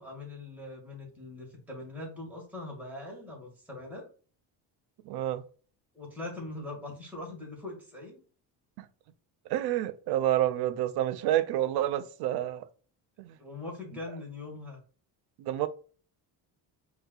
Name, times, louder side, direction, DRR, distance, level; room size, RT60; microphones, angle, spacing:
voice 1, 0.0-4.0 5.9-8.2 13.4-14.8, left 2 dB, 5° right, 1.7 m, -41 dB
voice 2, 5.1-5.4 8.8-8.9 9.5-12.6 13.2-13.4 15.4-15.7, right 13 dB, 65° right, 0.5 m, -28 dB
5.3 x 2.9 x 2.3 m
cardioid pair, 150°, 42 cm